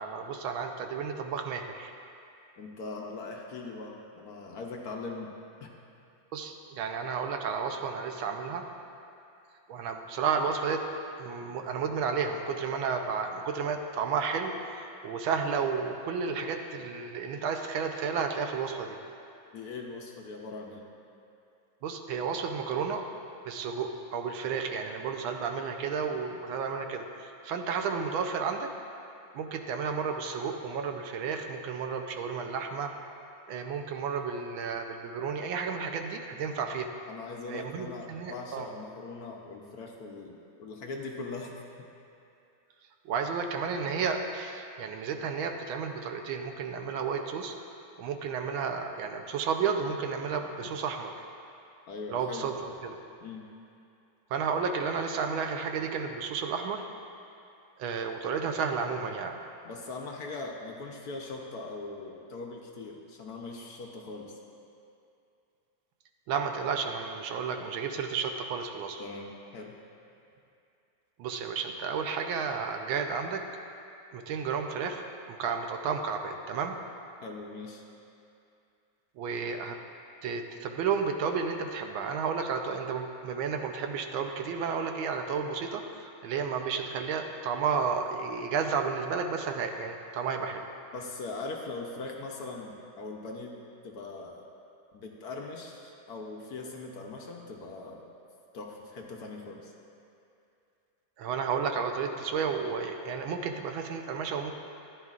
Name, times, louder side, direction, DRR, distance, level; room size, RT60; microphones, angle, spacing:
voice 1, 0.0-1.9 6.3-8.6 9.7-10.8 11.2-19.0 21.8-23.0 23.4-28.7 29.3-32.9 33.5-36.9 37.5-38.7 43.0-47.5 48.0-51.1 52.1-53.0 54.3-56.8 57.8-59.4 66.3-69.0 71.2-73.4 74.1-76.7 79.2-79.8 80.2-90.6 101.2-104.5, right 6 dB, 90° right, 5 dB, 1.5 m, -32 dB
voice 2, 2.6-5.7 19.5-20.8 37.1-41.5 51.9-52.5 53.2-53.5 59.6-64.4 69.0-69.8 77.2-77.8 90.9-93.6 93.8-94.5 94.9-98.1 98.5-99.7, left 3 dB, 65° left, 0 dB, 1.1 m, -41 dB
14.0 x 10.5 x 2.4 m, 2.7 s
omnidirectional pair, 2.1 m